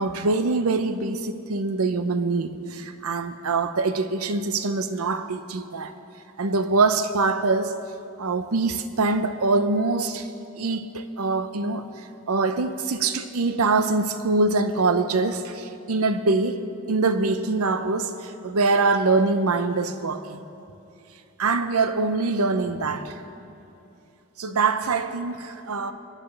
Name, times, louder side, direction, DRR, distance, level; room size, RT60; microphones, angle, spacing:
voice 1, 0.0-5.9 6.4-7.8 8.2-10.3 10.6-11.9 12.3-20.4 21.4-23.2 24.4-25.9, right 3 dB, 90° right, 0.7 m, -24 dB
25.5 x 9.9 x 3.3 m
head